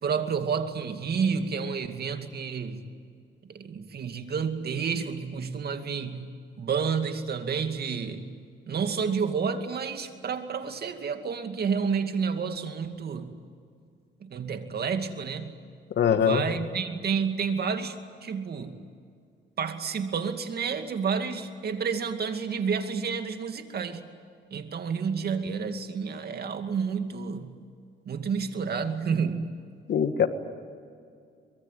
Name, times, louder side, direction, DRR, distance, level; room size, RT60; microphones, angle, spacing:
voice 1, 0.0-2.8 3.5-8.3 8.7-13.4 14.2-15.5 16.2-18.0 18.2-18.8 19.6-24.0 24.5-27.5 28.1-29.5, right 6 dB, 55° right, 7 dB, 2.4 m, -30 dB
voice 2, 16.0-16.4 29.9-30.3, left 8 dB, 60° left, 9 dB, 1.7 m, -22 dB
24.0 x 22.5 x 9.3 m, 2.3 s
cardioid pair, 90°, 20 cm